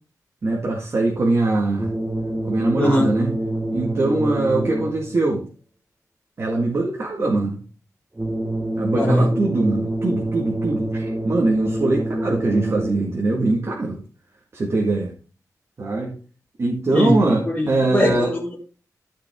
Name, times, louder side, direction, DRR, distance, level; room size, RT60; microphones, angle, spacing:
voice 1, 0.4-1.9 2.4-3.3 3.7-5.4 6.4-7.6 8.8-14.0 14.5-15.1 15.8-16.2 16.6-18.3, right 2 dB, 45° right, -1 dB, 1.9 m, -22 dB
sound 1, 1.8-5.2 8.2-13.2, right 1 dB, 15° right, 1.3 m, -26 dB
voice 2, 2.8-3.1 8.9-9.3 16.9-17.2 17.5-18.6, equal, 20° left, -5 dB, 2.0 m, -20 dB
12.0 x 5.8 x 3.7 m, 0.37 s
wide cardioid pair, 145°, 6 cm